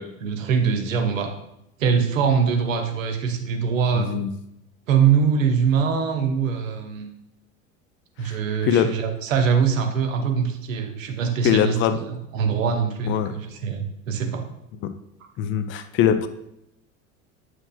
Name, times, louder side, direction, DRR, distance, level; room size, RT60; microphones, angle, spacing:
voice 1, 0.0-1.3 1.8-4.1 4.9-7.1 8.2-14.4, right 6 dB, 65° right, 5 dB, 1.1 m, -23 dB
voice 2, 3.9-4.3 8.2-8.4 8.6-8.9 11.4-12.0 13.0-13.3 14.8-14.9 15.4-16.3, left 9 dB, 30° left, 10 dB, 0.5 m, -22 dB
9.4 x 6.2 x 2.4 m, 0.80 s
figure-of-eight pair, 70°, 42 cm